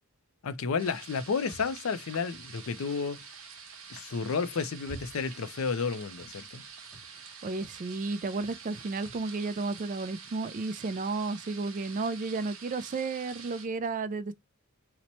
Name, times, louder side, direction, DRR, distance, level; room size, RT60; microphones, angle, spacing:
voice 1, 0.4-3.2 3.9-6.6, left 5 dB, 70° left, 0.5 m, -31 dB
sound 1, 0.8-13.7, right 6 dB, 70° right, 0.9 m, -47 dB
sound 2, 1.4-2.8 4.3-5.5 5.7-6.4 6.8-7.1 7.5-7.9 8.3-8.7 9.0-9.3, right 2 dB, 10° right, 1.2 m, -50 dB
voice 2, 7.4-14.3, right 3 dB, 35° right, 0.3 m, -33 dB
2.9 x 2.1 x 4.0 m
head